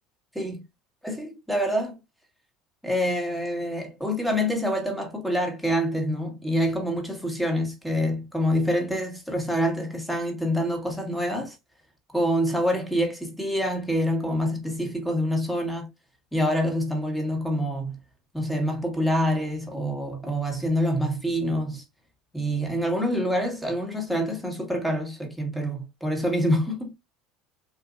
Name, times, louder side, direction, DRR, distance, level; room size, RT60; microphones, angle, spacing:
voice 1, 1.0-2.0 2.8-11.6 12.1-15.9 16.3-18.0 18.3-21.8 22.3-26.9, equal, 5° left, 1.5 m, -26 dB
4.0 x 2.7 x 2.4 m
supercardioid pair, 95°, 0 cm